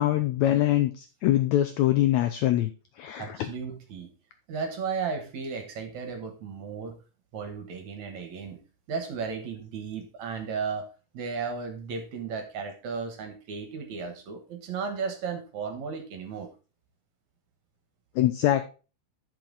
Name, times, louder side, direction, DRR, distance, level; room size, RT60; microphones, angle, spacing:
voice 1, 0.0-3.5 18.1-18.6, left 13 dB, 80° left, 9 dB, 1.6 m, -24 dB
voice 2, 3.2-4.1 4.5-7.0 7.3-8.6 8.9-10.9 11.1-16.5, right 5 dB, 65° right, 7 dB, 2.5 m, -34 dB
10.5 x 5.9 x 4.0 m, 0.33 s
omnidirectional pair, 3.9 m